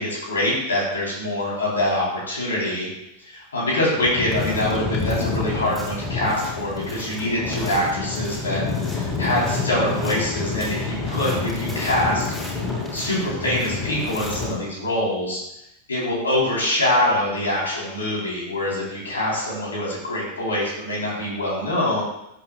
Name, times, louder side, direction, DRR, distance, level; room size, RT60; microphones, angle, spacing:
voice 1, 0.0-2.9 3.2-12.2 12.9-15.4 15.9-22.0, left 1 dB, 70° left, -4 dB, 4.4 m, -24 dB
sound 1, 4.0-14.5, left 3 dB, 10° left, 4.4 m, -28 dB
14.5 x 8.4 x 2.5 m, 0.83 s
figure-of-eight pair, 90°, 0 cm